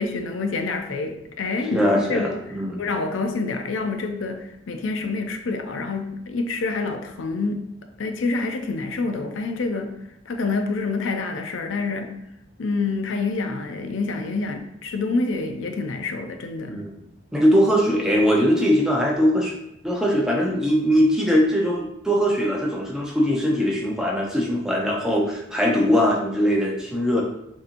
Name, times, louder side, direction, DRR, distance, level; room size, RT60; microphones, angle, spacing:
voice 1, 0.0-2.4 2.8-7.6 8.0-10.0 10.3-12.1 12.6-16.8, left 3 dB, 85° left, 0.5 m, -27 dB
voice 2, 1.7-2.8 16.7-17.0 17.3-19.5 19.8-27.2, equal, 5° right, 0.6 m, -21 dB
6.5 x 2.9 x 2.6 m
head